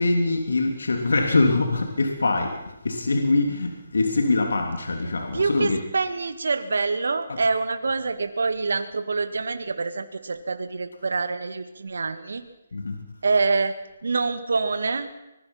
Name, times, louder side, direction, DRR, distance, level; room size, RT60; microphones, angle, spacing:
voice 1, 0.0-5.8 7.3-7.4 12.7-13.0, left 3 dB, 70° left, 3 dB, 3.2 m, -23 dB
voice 2, 5.3-12.4 13.2-13.7 14.0-15.1, right 4 dB, 70° right, 9 dB, 1.8 m, -26 dB
25.0 x 20.0 x 5.8 m, 0.94 s
figure-of-eight pair, 145°, 0 cm